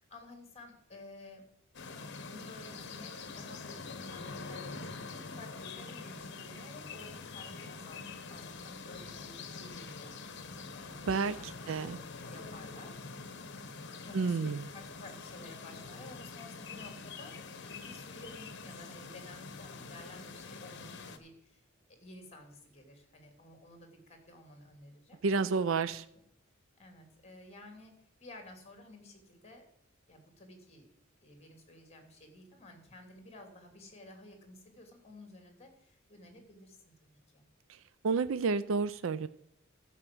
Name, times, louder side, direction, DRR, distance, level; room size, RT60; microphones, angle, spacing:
voice 1, 0.0-1.4 2.2-13.3 14.0-21.6 21.9-25.2 25.8-25.9 26.8-27.9 28.2-29.7 30.1-30.9 31.2-37.4, left 1 dB, 30° left, 5 dB, 2.8 m, -53 dB
sound 1, 1.7-21.2, left 4 dB, 60° left, 1.1 m, -45 dB
voice 2, 11.1-12.0 14.1-14.6 25.2-26.0 37.7-37.8 38.0-39.3, right 4 dB, 70° right, 14 dB, 0.5 m, -30 dB
12.0 x 6.0 x 7.7 m, 0.76 s
head